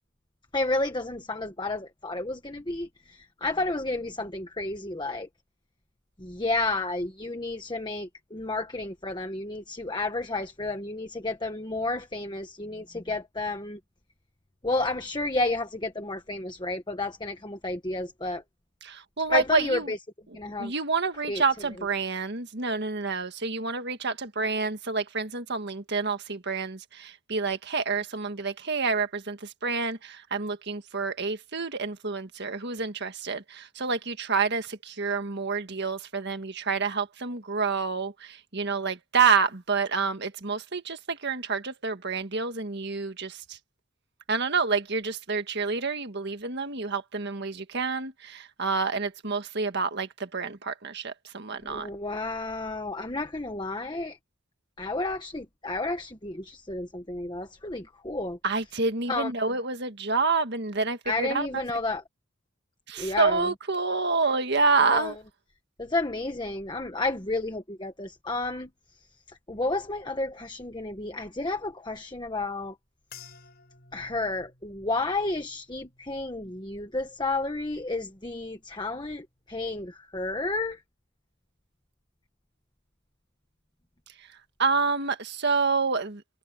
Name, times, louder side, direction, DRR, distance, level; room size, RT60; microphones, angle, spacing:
voice 1, 0.5-5.3 6.2-13.8 14.6-18.4 19.3-20.0 20.3-20.7 21.3-21.4 51.6-54.2 54.8-58.4 59.1-59.3 61.1-62.0 62.9-63.5 64.9-65.1 65.8-69.0 69.3-72.8 73.9-80.8, left 2 dB, 20° left, 1.4 m, -31 dB
voice 2, 18.8-19.9 20.6-43.6 44.3-51.9 58.4-61.5 62.9-65.2 84.2-86.2, right 4 dB, 50° right, 1.7 m, -28 dB
sound 1, 73.1-77.6 78.0-78.6 79.2-79.5, left 6 dB, 45° left, 5.8 m, -55 dB
head